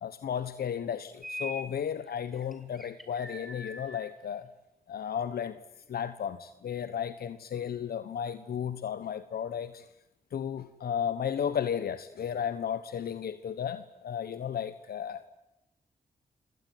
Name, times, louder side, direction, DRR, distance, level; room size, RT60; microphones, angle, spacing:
voice 1, 0.0-4.5 4.9-5.6 5.9-9.9 10.3-15.3, left 8 dB, 80° left, 12 dB, 1.2 m, -34 dB
sound 1, 1.2-1.7 2.1-4.1, equal, ahead, 4.1 m, -41 dB
27.5 x 18.0 x 9.3 m, 0.90 s
cardioid pair, 65°, 16 cm